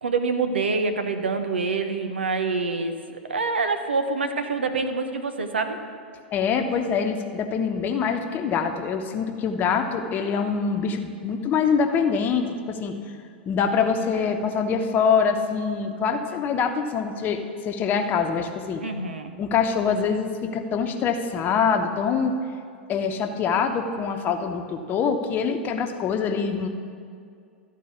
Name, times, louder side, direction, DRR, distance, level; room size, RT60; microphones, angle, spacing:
voice 1, 0.0-5.8 18.8-19.3, right 4 dB, 80° right, 7 dB, 0.9 m, -26 dB
voice 2, 6.3-12.9 13.5-18.8 19.4-22.3 22.9-26.7, left 6 dB, 30° left, 5 dB, 1.0 m, -24 dB
13.0 x 4.7 x 8.3 m, 2.2 s
figure-of-eight pair, 95°, 6 cm